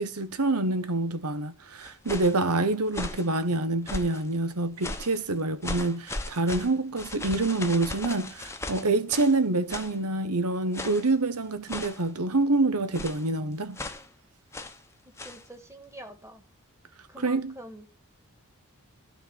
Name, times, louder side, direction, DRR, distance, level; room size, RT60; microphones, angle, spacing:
voice 1, 0.0-13.8 17.2-17.5, right 2 dB, 90° right, 1.3 m, -26 dB
sound 1, 1.8-2.4 2.9-3.3 3.9-4.3 4.8-5.2 5.6-9.4 9.7-10.0 10.7-11.1 11.7-12.1 12.9-13.3 13.8-14.1 14.5-14.8 15.2-15.4, left 2 dB, 10° left, 1.0 m, -37 dB
voice 2, 15.0-16.4 17.1-17.9, right 1 dB, 10° right, 1.6 m, -46 dB
13.0 x 4.5 x 6.2 m
head